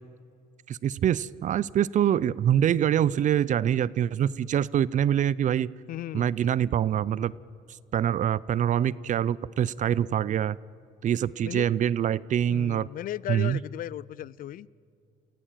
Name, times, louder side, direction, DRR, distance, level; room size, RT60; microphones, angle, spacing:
voice 1, 0.7-5.7 6.1-7.3 7.9-10.6 11.0-12.9 13.3-13.6, right 10 dB, 45° right, 21 dB, 0.5 m, -25 dB
voice 2, 5.9-6.3 11.4-11.7 12.5-14.7, left 13 dB, 55° left, 23 dB, 0.5 m, -36 dB
29.0 x 16.0 x 9.1 m, 2.4 s
cardioid pair, 110°, 17 cm